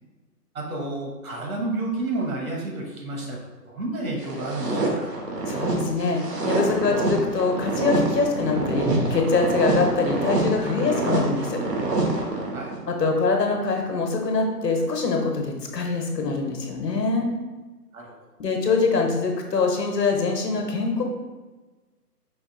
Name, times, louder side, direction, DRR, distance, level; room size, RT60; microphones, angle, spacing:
voice 1, 0.5-5.1 12.5-12.7 17.9-18.1, right 2 dB, 60° right, 0 dB, 1.1 m, -30 dB
sound 1, 4.2-12.8, right 2 dB, 80° right, 1.2 m, -26 dB
voice 2, 5.5-11.6 12.9-17.3 18.4-21.0, left 4 dB, 80° left, 2 dB, 1.2 m, -24 dB
5.1 x 2.7 x 3.8 m, 1.2 s
hypercardioid pair, 165°, 48 cm